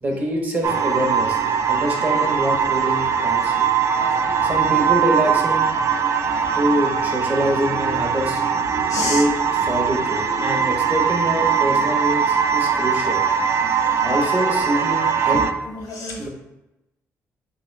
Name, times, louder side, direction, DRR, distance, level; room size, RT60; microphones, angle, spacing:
voice 1, 0.0-1.4 1.7-3.7 4.4-5.7 6.5-8.4 9.0-13.2 14.0-15.4 16.2-16.3, equal, 30° right, 1 dB, 0.8 m, -25 dB
sound 1, 0.6-15.5, right 7 dB, 55° right, 0.3 m, -21 dB
voice 2, 3.9-4.4 6.4-6.5 8.9-9.2 13.6-14.1 15.3-15.4 15.7-16.3, left 3 dB, 85° left, 1 dB, 0.8 m, -31 dB
3.7 x 2.8 x 3.2 m, 0.93 s
cardioid pair, 115°, 6 cm